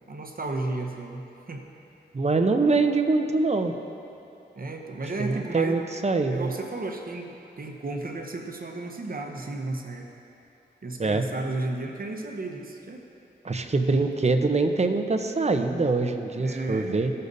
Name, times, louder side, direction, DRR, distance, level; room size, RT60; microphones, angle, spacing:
voice 1, 0.1-1.6 4.6-5.8 6.3-10.1 10.8-13.0 16.4-17.0, right 2 dB, 55° right, 2 dB, 1.1 m, -33 dB
voice 2, 2.1-3.7 5.2-6.5 11.0-11.2 13.4-17.1, right 3 dB, 35° right, 6 dB, 0.8 m, -24 dB
17.0 x 6.6 x 2.7 m, 2.8 s
cardioid pair, 45°, 18 cm